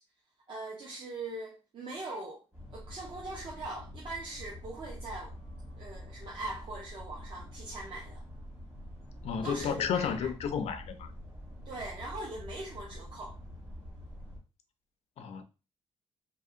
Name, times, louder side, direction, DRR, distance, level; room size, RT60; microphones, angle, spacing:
voice 1, 0.5-2.4 2.7-5.3 5.8-8.2 9.4-10.3 11.7-13.4, right 2 dB, 40° right, 0.6 m, -41 dB
sound 1, 2.5-14.4, equal, 20° right, 1.1 m, -46 dB
voice 2, 9.2-11.1 15.2-15.4, left 7 dB, 55° left, 0.4 m, -32 dB
2.7 x 2.7 x 2.5 m
cardioid pair, 175°, 13 cm